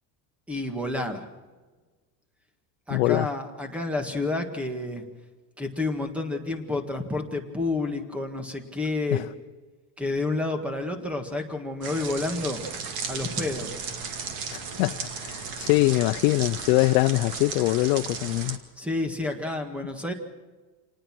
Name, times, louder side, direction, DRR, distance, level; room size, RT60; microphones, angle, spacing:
voice 1, 0.5-1.3 2.9-5.0 5.6-9.3 10.0-12.7 13.1-13.7 18.8-20.1, left 2 dB, 5° right, 1.8 m, -29 dB
voice 2, 2.9-3.3 9.1-9.2 14.5-18.6, left 21 dB, 85° left, 0.8 m, -23 dB
sound 1, 11.8-18.6, right 5 dB, 50° right, 2.3 m, -35 dB
28.0 x 19.5 x 6.1 m
cardioid pair, 180°, 45 cm